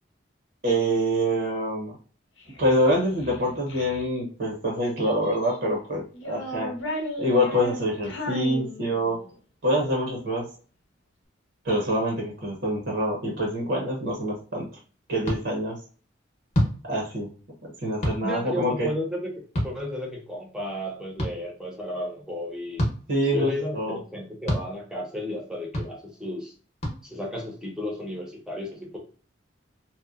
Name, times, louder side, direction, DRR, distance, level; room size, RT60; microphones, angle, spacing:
voice 1, 0.6-2.0 2.6-6.7 7.2-9.2 9.6-10.5 11.6-14.7 15.1-15.8 16.9-17.3 17.8-18.9 23.1-24.0, equal, 65° right, -1 dB, 0.7 m, -25 dB
Child speech kid speaking, 2.4-4.1 4.8-5.7 6.1-9.3, equal, 75° left, 0.7 m, -36 dB
sound 1, 15.2-15.4 16.5-16.7 18.0-18.2 19.5-19.7 21.2-21.3 22.8-23.0 24.5-24.6 25.7-25.9 26.8-27.0, equal, 35° left, 0.8 m, -25 dB
voice 2, 18.2-22.8 23.3-26.5 27.0-29.0, left 1 dB, 5° right, -1 dB, 0.6 m, -33 dB
2.8 x 2.1 x 2.3 m, 0.41 s
head